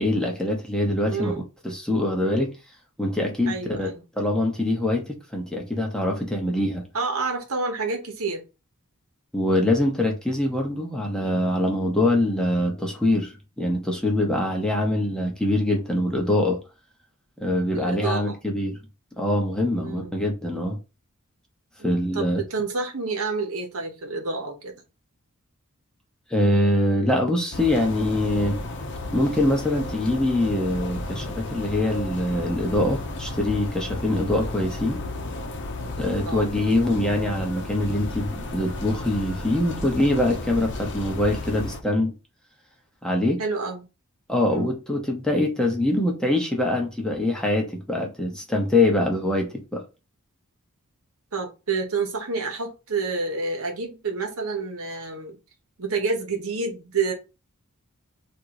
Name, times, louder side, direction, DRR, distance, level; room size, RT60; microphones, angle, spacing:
voice 1, 0.0-1.3 1.6-2.5 3.0-3.9 4.2-6.8 9.3-16.6 17.4-18.8 19.2-20.8 21.8-22.4 26.3-28.6 29.1-35.0 36.0-42.1 43.0-43.4 44.3-49.8, left 1 dB, 5° left, 0.8 m, -24 dB
voice 2, 1.0-1.4 3.5-4.0 6.9-8.4 17.7-18.4 19.7-20.2 21.8-24.7 36.3-36.5 43.4-43.8 44.5-44.7 51.3-55.4 55.8-57.1, right 4 dB, 70° right, 1.1 m, -29 dB
sound 1, 27.5-41.8, left 2 dB, 55° left, 0.7 m, -33 dB
3.7 x 2.6 x 4.7 m
head